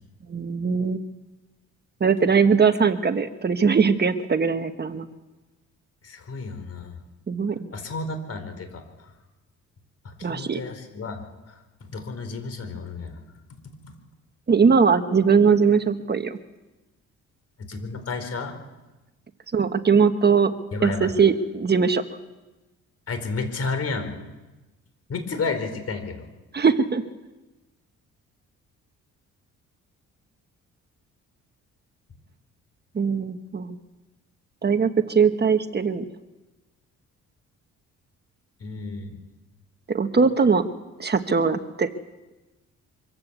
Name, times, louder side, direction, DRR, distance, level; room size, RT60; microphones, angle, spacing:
voice 1, 0.3-1.0 2.0-5.1 7.3-7.7 10.2-10.6 14.5-16.4 19.5-20.5 20.8-22.0 26.5-27.0 32.9-33.8 34.6-36.1 39.9-40.7 41.0-41.9, right 5 dB, 35° right, 8 dB, 1.3 m, -20 dB
voice 2, 6.0-7.0 7.7-9.1 10.0-11.2 11.5-11.6 11.8-13.2 13.8-13.9 17.7-18.5 20.7-21.1 23.1-24.1 25.1-26.2 38.6-39.1, left 4 dB, 55° left, 8 dB, 4.4 m, -31 dB
24.5 x 14.5 x 8.2 m, 1.1 s
cardioid pair, 90°, 30 cm